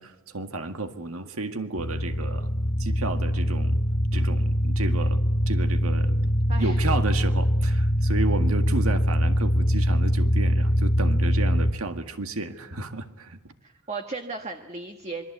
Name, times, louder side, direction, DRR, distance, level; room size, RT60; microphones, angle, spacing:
voice 1, 0.0-2.5 2.8-3.8 4.1-13.5, right 2 dB, 70° right, 7 dB, 1.9 m, -32 dB
sound 1, 1.8-11.7, equal, 40° left, 1.0 m, -23 dB
voice 2, 6.5-6.8 13.6-15.3, right 3 dB, 30° right, 5 dB, 1.3 m, -35 dB
26.0 x 23.0 x 8.2 m, 1.1 s
head